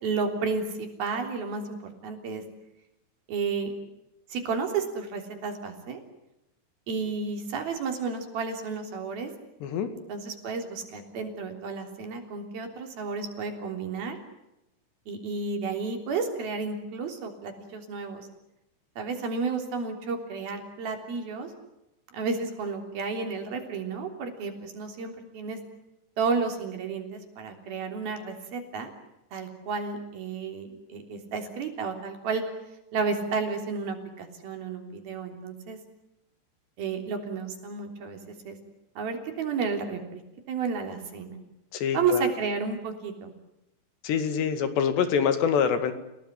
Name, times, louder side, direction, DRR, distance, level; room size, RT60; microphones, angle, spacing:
voice 1, 0.0-1.8 2.0-2.4 3.3-3.7 4.3-6.0 6.9-9.3 10.1-14.2 15.1-18.3 19.0-21.5 22.1-25.6 26.2-28.9 29.3-32.4 32.9-35.8 36.8-38.2 38.5-38.6 39.0-40.2 40.5-41.4 41.9-43.3, right 4 dB, 60° right, 5 dB, 5.2 m, -32 dB
voice 2, 41.7-42.3 44.0-45.9, left 7 dB, 80° left, 9 dB, 4.2 m, -25 dB
30.0 x 17.5 x 9.8 m, 0.90 s
omnidirectional pair, 4.9 m